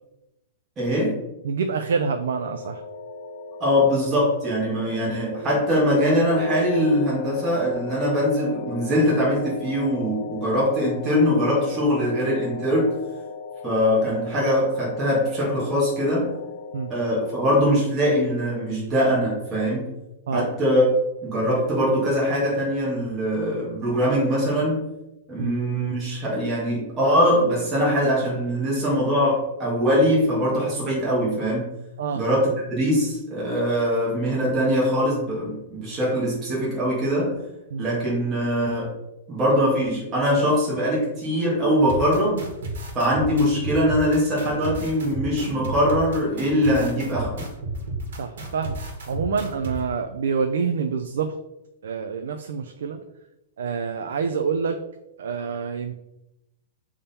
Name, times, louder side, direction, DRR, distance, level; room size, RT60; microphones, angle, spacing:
voice 1, 0.8-1.2 3.6-13.0 13.6-16.3 16.9-19.9 20.3-20.9 21.2-24.8 25.3-31.7 32.1-37.4 37.8-38.9 39.3-42.5 42.9-47.5, equal, 15° right, -6 dB, 1.9 m, -22 dB
voice 2, 1.4-2.8 16.7-16.9 20.3-20.5 25.4-25.5 32.0-32.2 37.7-37.9 48.2-48.8 49.1-51.3 51.8-53.0 53.6-54.8 55.2-56.0, right 5 dB, 90° right, 6 dB, 0.5 m, -27 dB
sound 1, 2.2-17.4, left 6 dB, 55° left, 0.7 m, -37 dB
sound 2, 41.9-49.7, right 3 dB, 70° right, 1.7 m, -32 dB
6.8 x 3.7 x 4.3 m, 0.93 s
supercardioid pair, 175°, 0 cm